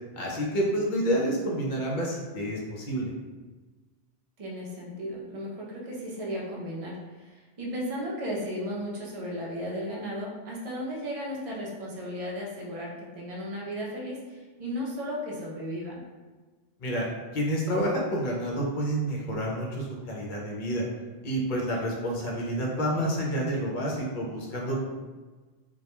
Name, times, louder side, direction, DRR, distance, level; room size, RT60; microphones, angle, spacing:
voice 1, 0.1-3.1 16.8-17.1 17.3-20.9 21.2-24.8, right 1 dB, 55° left, -2 dB, 0.6 m, -29 dB
voice 2, 4.4-16.0 22.9-23.2, equal, 50° right, -4 dB, 0.4 m, -35 dB
2.2 x 2.1 x 2.9 m, 1.3 s
omnidirectional pair, 1.2 m